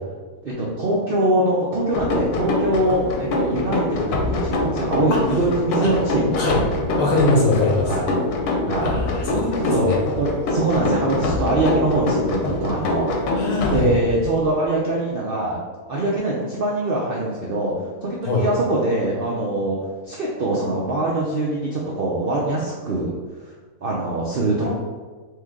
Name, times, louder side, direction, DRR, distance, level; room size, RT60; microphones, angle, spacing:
voice 1, 0.4-6.4 7.9-8.0 8.6-8.9 9.7-13.1 13.7-15.6 15.9-17.7 18.0-19.8 20.1-23.1 23.8-24.7, right 2 dB, 60° right, -4 dB, 0.6 m, -23 dB
sound 1, 1.9-14.4, left 2 dB, 85° left, 1.2 m, -24 dB
voice 2, 7.0-7.9 8.8-10.0 12.4-12.5 13.3-13.9 18.2-18.4 24.6-24.7, left 2 dB, 60° left, -3 dB, 1.3 m, -22 dB
3.7 x 3.2 x 3.6 m, 1.4 s
omnidirectional pair, 1.6 m